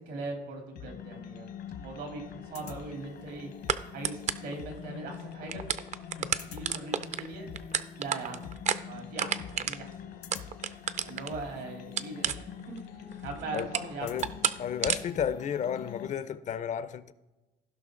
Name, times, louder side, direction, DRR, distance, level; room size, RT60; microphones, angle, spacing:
voice 1, 0.0-1.5 1.8-3.5 3.9-5.6 6.2-7.5 8.0-8.4 8.9-9.9 11.1-12.5 12.9-14.1, right 3 dB, 85° right, 3.3 m, -40 dB
sound 1, 0.8-16.1, left 8 dB, 75° left, 1.1 m, -44 dB
sound 2, 1.9-2.0 3.7-4.5 5.1-5.2 5.4-11.4 12.0-12.8 13.1-13.9 14.2-14.6 14.8-15.0, right 8 dB, 45° right, 0.5 m, -30 dB
voice 2, 14.0-14.3 14.6-17.1, left 8 dB, 45° left, 0.5 m, -32 dB
16.0 x 5.5 x 3.8 m
cardioid pair, 110°, 17 cm